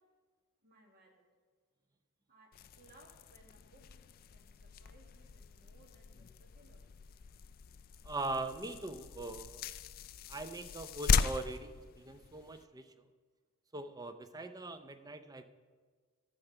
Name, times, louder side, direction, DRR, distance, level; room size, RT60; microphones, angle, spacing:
voice 1, 0.6-1.2 2.3-2.5 2.8-3.8 4.3-6.3 6.5-6.8, right 2 dB, 45° right, 1 dB, 1.6 m, -63 dB
sound 1, 2.5-12.6, left 6 dB, 40° left, 0.3 m, -38 dB
voice 2, 8.0-9.6 10.3-13.0 13.7-15.4, right 2 dB, 15° right, 9 dB, 0.5 m, -41 dB
12.0 x 6.7 x 5.8 m, 1.5 s
head